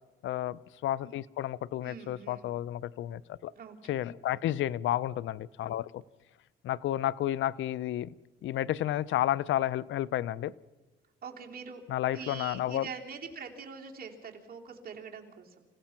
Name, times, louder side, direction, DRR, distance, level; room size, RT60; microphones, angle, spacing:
voice 1, 0.2-3.5 3.8-6.0 6.6-8.1 8.4-10.5 11.9-12.9, left 13 dB, 75° left, 21 dB, 0.6 m, -31 dB
voice 2, 1.8-2.5 3.6-4.0 11.2-11.8 12.1-15.7, right 6 dB, 50° right, 1 dB, 3.2 m, -44 dB
28.0 x 16.0 x 5.9 m, 1.2 s
cardioid pair, 90°, 20 cm